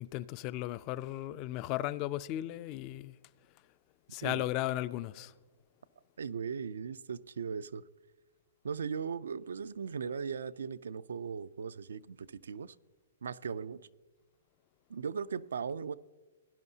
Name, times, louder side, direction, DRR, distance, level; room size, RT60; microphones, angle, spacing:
voice 1, 0.0-3.2 4.1-5.3, left 15 dB, 30° left, 0.3 m, -36 dB
voice 2, 6.2-7.8 8.6-12.7 13.2-13.8 14.9-15.9, right 6 dB, 85° right, 0.4 m, -38 dB
17.5 x 10.5 x 2.8 m
hypercardioid pair, 155°, 0 cm